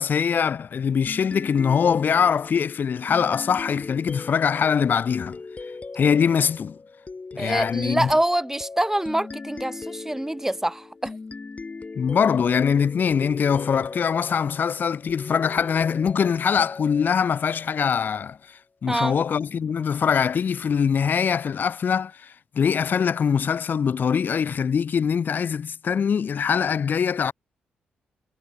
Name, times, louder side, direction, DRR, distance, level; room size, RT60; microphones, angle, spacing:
voice 1, 0.0-5.4 6.0-6.8 7.3-8.1 12.0-27.3, left 7 dB, 55° left, 0.5 m, -23 dB
sound 1, 1.1-18.2, left 4 dB, 35° left, 6.1 m, -39 dB
voice 2, 7.4-11.2 18.9-19.1, right 1 dB, 10° right, 2.1 m, -25 dB
hypercardioid pair, 45°, 4 cm